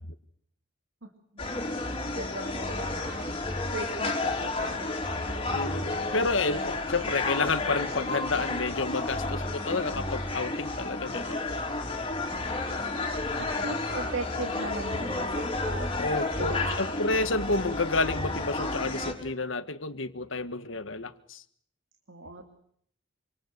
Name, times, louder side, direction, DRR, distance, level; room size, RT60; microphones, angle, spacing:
sound 1, 1.4-19.1, left 2 dB, 25° left, 3.8 m, -31 dB
voice 1, 2.1-3.3 3.7-5.0 12.3-12.8 13.6-15.9 16.4-16.9 22.1-22.4, right 2 dB, 85° right, 5 dB, 2.6 m, -38 dB
voice 2, 5.5-11.6 16.0-21.4, left 3 dB, 85° left, 11 dB, 1.6 m, -30 dB
27.0 x 26.0 x 6.8 m, 0.66 s
head